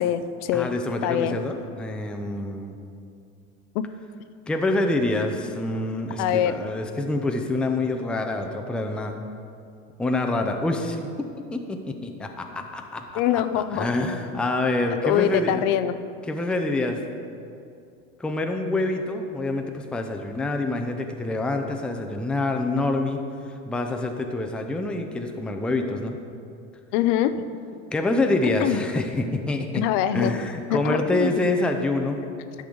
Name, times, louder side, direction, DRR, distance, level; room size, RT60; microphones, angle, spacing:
voice 1, 0.0-0.7 1.0-1.4 3.7-3.8 6.2-6.5 13.2-13.9 15.0-15.9 26.9-27.3 28.6-28.8 29.7-30.3 30.7-31.3, left 11 dB, 65° left, 12 dB, 0.5 m, -23 dB
voice 2, 0.5-2.8 4.5-9.2 10.0-11.0 11.5-15.6 16.3-17.0 18.2-23.2 23.7-26.2 27.9-29.9 30.1-32.2, left 2 dB, 5° left, 4 dB, 0.4 m, -26 dB
10.5 x 6.3 x 3.8 m, 2.5 s
supercardioid pair, 115°, 39 cm